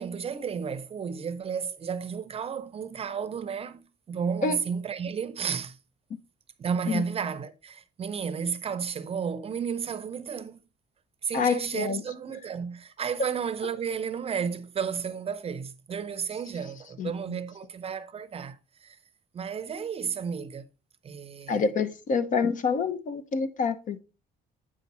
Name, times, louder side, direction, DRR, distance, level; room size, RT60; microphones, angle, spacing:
voice 1, 0.0-5.8 6.6-10.6 11.2-19.0 19.3-20.6 21.0-21.6, right 6 dB, 35° right, 0.6 m, -32 dB
voice 2, 11.3-12.0 17.0-17.4 21.5-24.0, left 5 dB, 50° left, 0.9 m, -27 dB
8.3 x 5.0 x 4.2 m
cardioid pair, 110°, 17 cm